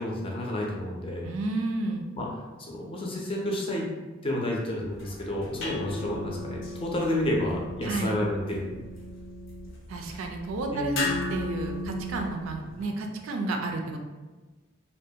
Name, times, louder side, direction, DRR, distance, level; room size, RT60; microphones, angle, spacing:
voice 1, 0.0-1.3 2.1-2.3 2.6-3.9 4.2-8.7 10.7-11.1, left 1 dB, 30° left, -2 dB, 0.5 m, -30 dB
voice 2, 1.2-2.0 7.8-8.2 9.9-14.0, right 2 dB, 90° right, 3 dB, 0.4 m, -31 dB
sound 1, 4.9-12.8, left 2 dB, 80° left, 0.7 m, -36 dB
2.5 x 2.2 x 2.7 m, 1.2 s
head